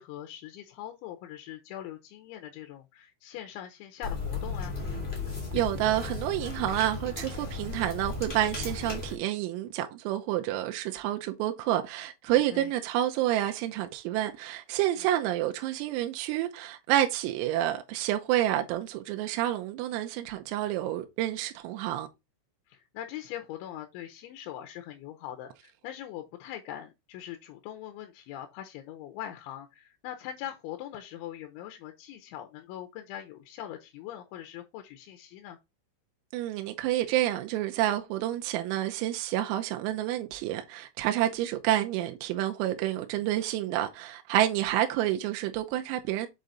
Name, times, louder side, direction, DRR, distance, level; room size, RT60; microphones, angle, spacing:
voice 1, 0.0-4.8 12.5-12.7 15.0-15.1 22.7-35.6, left 11 dB, 80° left, 3.0 m, -42 dB
sound 1, 4.0-9.1, left 3 dB, 35° left, 0.9 m, -35 dB
voice 2, 5.5-22.1 36.3-46.3, right 13 dB, 85° right, 3.5 m, -29 dB
7.7 x 5.0 x 4.0 m
omnidirectional pair, 6.0 m